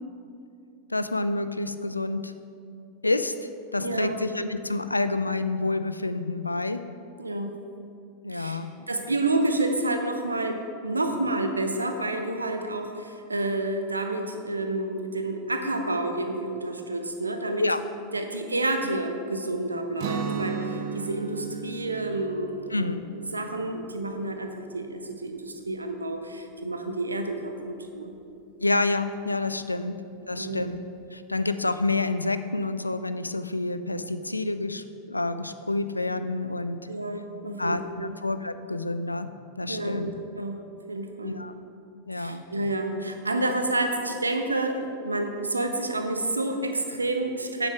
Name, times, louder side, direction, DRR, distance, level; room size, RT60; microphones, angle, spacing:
voice 1, 0.9-2.3 3.0-6.8 8.2-8.8 17.6-17.8 22.7-23.0 28.6-29.9 30.3-30.8 31.1-36.8 37.6-39.3 39.6-40.1 41.2-41.5 42.1-42.4, left 2 dB, 85° left, 11 dB, 0.4 m, -28 dB
voice 2, 3.8-4.2 7.2-7.6 8.3-8.6 8.9-17.7 18.1-23.0 23.3-28.1 29.8-29.9 30.4-30.7 36.9-38.1 39.7-41.4 42.1-47.7, right 2 dB, 80° right, 5 dB, 0.8 m, -29 dB
Guitar, 20.0-25.8, right 6 dB, 45° right, 0.7 m, -36 dB
9.0 x 7.3 x 4.6 m, 2.5 s
figure-of-eight pair, 90°, 0 cm